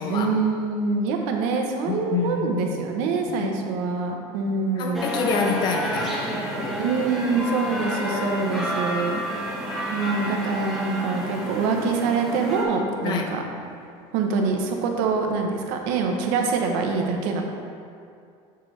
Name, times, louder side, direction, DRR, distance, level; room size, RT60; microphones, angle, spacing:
voice 1, 0.1-5.0 6.8-9.5 9.9-13.4 14.1-17.4, right 4 dB, 75° right, 2 dB, 1.0 m, -25 dB
voice 2, 1.9-2.8 3.4-3.5 4.8-6.8 8.1-8.4 13.0-13.4, left 5 dB, 40° left, 3 dB, 0.8 m, -27 dB
sound 1, 4.9-12.6, equal, ahead, 1.2 m, -30 dB
7.7 x 6.8 x 3.3 m, 2.4 s
cardioid pair, 170°, 12 cm